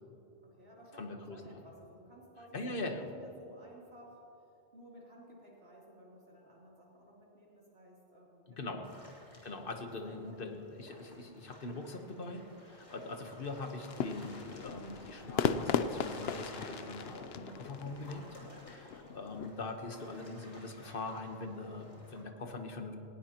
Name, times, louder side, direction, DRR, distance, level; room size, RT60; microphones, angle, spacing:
voice 1, 0.4-8.8 10.0-10.5, equal, 75° right, -4 dB, 3.3 m, -56 dB
voice 2, 1.0-1.6 2.5-3.0 8.6-9.0 9.4-18.3 18.6-22.9, left 2 dB, 60° left, 5 dB, 1.3 m, -42 dB
sound 1, 8.8-22.2, equal, 30° left, 2.9 m, -55 dB
sound 2, 13.8-19.5, left 7 dB, 80° left, 0.8 m, -37 dB
18.5 x 17.0 x 2.9 m, 2.8 s
omnidirectional pair, 1.0 m